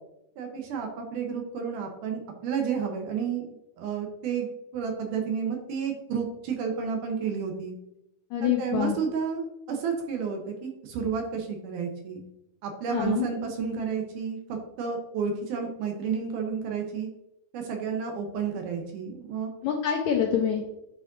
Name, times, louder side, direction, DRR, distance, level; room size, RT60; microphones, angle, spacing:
voice 1, 0.4-7.7 8.4-12.2 12.6-14.4 14.8-17.1 17.5-19.5, right 6 dB, 70° right, 3 dB, 2.2 m, -31 dB
voice 2, 8.3-9.0 12.9-13.2 19.6-20.6, left 9 dB, 85° left, 1 dB, 1.6 m, -26 dB
8.9 x 4.9 x 2.6 m, 0.85 s
omnidirectional pair, 4.2 m